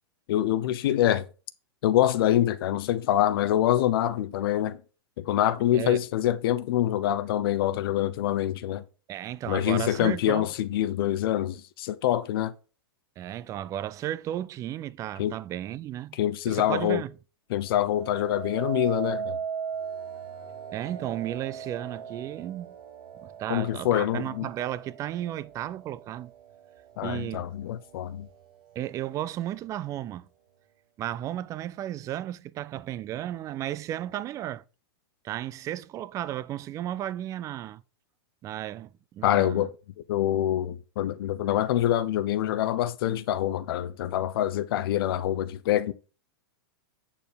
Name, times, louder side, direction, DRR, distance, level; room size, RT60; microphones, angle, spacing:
voice 1, 0.3-1.3 1.8-4.8 5.2-8.8 9.5-12.5 15.2-15.3 16.1-17.0 17.5-19.4 23.5-24.5 27.0-28.3 39.2-39.7 40.1-45.9, left 12 dB, 65° left, 0.6 m, -25 dB
voice 2, 9.1-10.5 13.2-16.2 16.5-17.1 20.7-22.7 23.2-26.3 27.0-27.4 28.8-30.3 31.0-34.6 35.2-37.8 38.4-39.7, right 12 dB, 25° right, 0.3 m, -34 dB
sound 1, 17.7-26.9 27.4-27.9, right 7 dB, 60° right, 1.0 m, -38 dB
8.4 x 4.5 x 5.0 m
hypercardioid pair, 130°, 13 cm